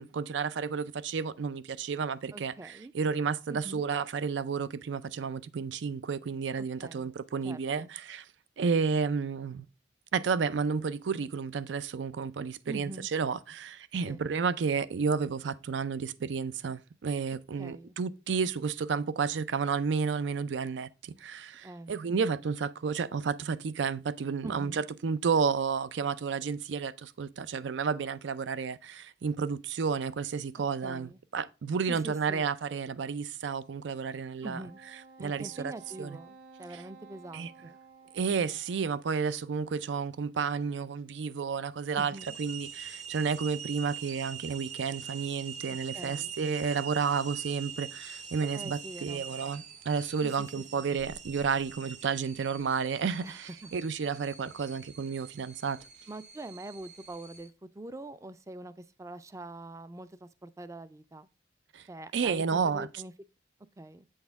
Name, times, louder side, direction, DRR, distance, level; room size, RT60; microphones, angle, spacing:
voice 1, 0.0-8.2 8.6-9.7 10.1-34.6 35.2-35.7 36.0-36.2 36.7-36.8 37.3-37.5 38.1-42.1 42.4-55.8 61.7-61.8 62.1-62.9, right 5 dB, 85° right, 0.4 m, -31 dB
voice 2, 2.3-2.9 3.5-3.8 6.6-7.1 7.4-7.9 12.7-13.1 14.0-14.2 17.6-17.9 21.6-21.9 24.4-24.8 30.8-31.2 31.9-32.5 34.4-34.8 35.2-37.8 41.9-42.3 45.9-46.3 48.5-49.2 50.2-50.6 51.0-51.1 53.2-53.7 56.1-61.3 61.9-63.1 63.8-64.1, right 2 dB, 15° right, 0.4 m, -44 dB
Wind instrument woodwind instrument, 34.4-39.0, right 4 dB, 60° right, 1.2 m, -54 dB
sound 1, 42.2-57.5, right 7 dB, 40° right, 0.7 m, -44 dB
7.8 x 6.4 x 3.5 m
head